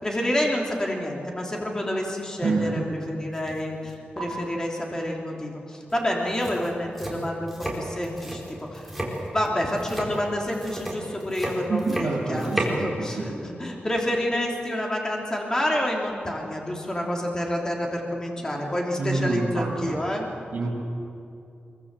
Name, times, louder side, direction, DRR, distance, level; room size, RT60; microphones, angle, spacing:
voice 1, 0.0-8.9 9.3-20.3, left 1 dB, 20° left, -1 dB, 3.2 m, -28 dB
voice 2, 2.4-2.9 11.7-13.4 19.0-20.0 20.5-20.7, right 3 dB, 50° right, -2 dB, 6.9 m, -27 dB
sound 1, 3.3-3.6 3.9-4.2 5.9-6.0 6.3-12.8, right 1 dB, ahead, 4.5 m, -33 dB
24.0 x 23.0 x 7.6 m, 2.6 s
wide cardioid pair, 145°, 3 cm